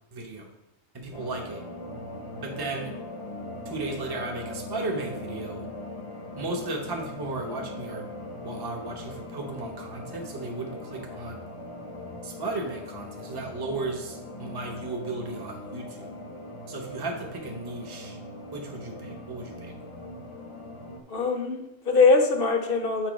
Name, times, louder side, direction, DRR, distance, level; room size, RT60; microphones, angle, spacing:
voice 1, 0.1-0.5 0.9-1.6 2.4-2.9 3.6-5.7 6.4-8.1 8.4-11.5 12.2-16.1 16.7-18.2 18.5-19.7, right 2 dB, 20° right, 0 dB, 0.9 m, -35 dB
sound 1, 1.1-21.0, left 1 dB, 25° left, 0.9 m, -40 dB
voice 2, 21.1-23.1, left 4 dB, 50° left, 5 dB, 0.9 m, -22 dB
7.6 x 3.9 x 5.2 m, 0.88 s
omnidirectional pair, 1.4 m